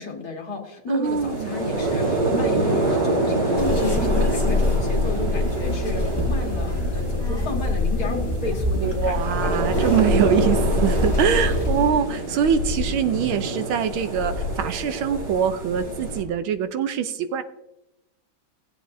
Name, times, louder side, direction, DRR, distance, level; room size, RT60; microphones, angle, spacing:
voice 1, 0.0-9.6, left 3 dB, 50° left, 1 dB, 2.0 m, -32 dB
voice 2, 0.9-1.5 8.8-17.4, right 8 dB, 80° right, 10 dB, 1.5 m, -24 dB
sound 1, 1.0-16.2, right 2 dB, 60° right, 4.7 m, -26 dB
sound 2, 3.6-11.9, left 2 dB, 15° left, 1.5 m, -24 dB
17.5 x 7.9 x 2.7 m, 0.93 s
omnidirectional pair, 2.2 m